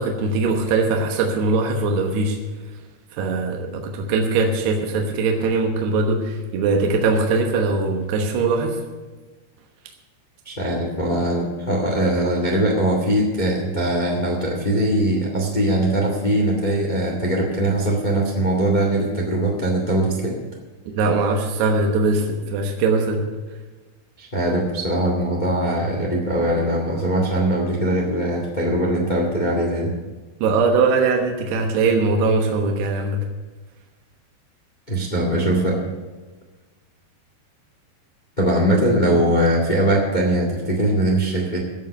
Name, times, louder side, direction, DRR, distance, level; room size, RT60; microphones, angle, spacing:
voice 1, 0.0-2.4 3.1-8.8 21.0-23.2 30.4-33.2, right 3 dB, 70° right, 2 dB, 3.1 m, -21 dB
voice 2, 10.4-20.4 24.2-29.9 34.9-35.8 38.4-41.6, right 1 dB, 70° left, -1 dB, 0.4 m, -21 dB
16.0 x 5.6 x 9.1 m, 1.3 s
omnidirectional pair, 5.2 m